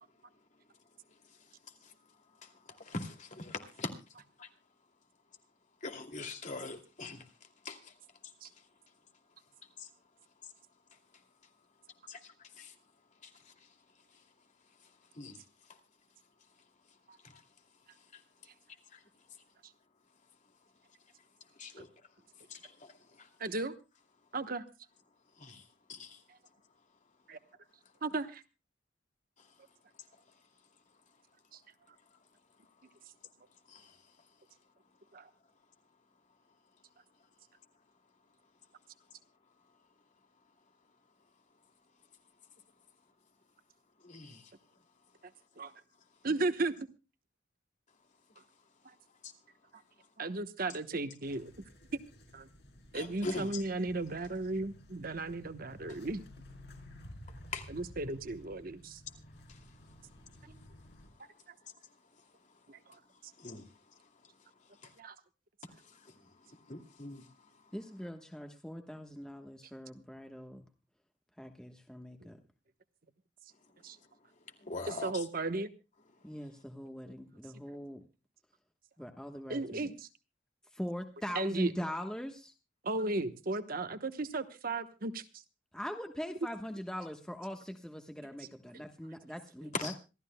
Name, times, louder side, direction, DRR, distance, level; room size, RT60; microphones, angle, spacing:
voice 1, 2.4-3.9 4.4-4.5 5.8-7.3 7.6-7.9 9.8-9.9 12.1-12.7 13.2-13.5 15.1-15.4 17.2-17.4 18.1-18.2 18.9-19.0 21.6-21.9 22.5-23.3 25.4-25.6 25.9-26.2 29.4-29.5 33.7-34.0 44.0-44.5 49.2-49.3 52.9-53.6 57.5-57.7 59.5-59.6 63.4-63.7 64.8-64.9 65.8-67.3 74.6-75.1 89.7-89.9, left 3 dB, 40° left, 2.6 m, -43 dB
voice 2, 23.4-23.7 24.3-24.6 26.3-26.4 27.3-27.4 28.0-28.4 31.5-31.6 35.1-35.3 45.6-45.7 46.2-46.8 48.8-48.9 49.7-49.8 50.2-51.5 51.9-52.0 52.3-52.5 52.9-56.2 57.7-59.0 60.4-60.6 62.7-63.3 65.0-65.2 72.2-72.3 73.8-74.0 74.9-75.7 79.5-80.1 81.3-81.7 82.8-85.4 88.4-88.5 88.7-88.8, right 2 dB, 50° right, 1.1 m, -35 dB
sound 1, 51.2-61.1, equal, 65° left, 5.4 m, -54 dB
voice 3, 67.7-70.6 71.4-72.4 76.2-78.0 79.0-79.9 80.7-82.5 85.7-89.9, equal, 5° left, 1.2 m, -42 dB
26.5 x 13.5 x 2.2 m
head